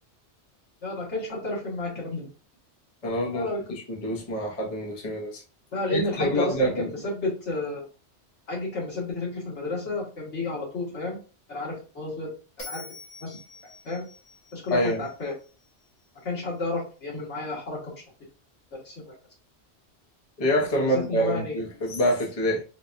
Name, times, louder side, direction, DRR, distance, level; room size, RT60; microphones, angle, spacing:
voice 1, 0.8-2.3 3.3-3.6 5.7-6.7 7.0-7.9 8.5-11.2 11.5-12.3 12.7-12.8 13.2-13.4 13.9-14.0 14.5-15.3 16.2-17.9 18.9-19.0 20.9-21.6, left 2 dB, 80° left, -4 dB, 1.8 m, -31 dB
voice 2, 3.0-5.4 5.9-6.9 14.7-15.0 20.4-22.6, equal, 35° left, -3 dB, 1.0 m, -26 dB
Bell, 12.6-15.8, left 3 dB, 55° left, 1.4 m, -45 dB
4.4 x 2.3 x 2.6 m, 0.35 s
omnidirectional pair, 1.2 m